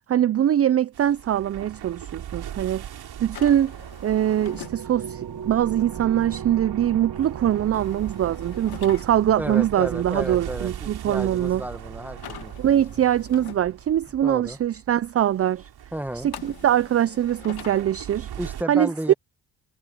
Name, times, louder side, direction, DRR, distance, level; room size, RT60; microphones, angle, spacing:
voice 1, 0.1-2.8 3.2-3.8 4.0-11.6 12.6-15.7 16.2-18.3 18.7-19.1, right 11 dB, 40° right, 0.5 m, -22 dB
sound 1, 0.9-18.6, right 10 dB, 75° right, 3.8 m, -39 dB
sound 2, 3.3-4.8 7.7-9.0 12.2-13.6 16.3-17.8, left 11 dB, 75° left, 1.7 m, -43 dB
sound 3, 3.5-13.3, right 8 dB, 55° right, 1.2 m, -41 dB
voice 2, 9.4-12.8 14.2-14.6 15.9-16.3 18.4-19.1, right 1 dB, 5° right, 1.6 m, -32 dB
cardioid pair, 85°, 38 cm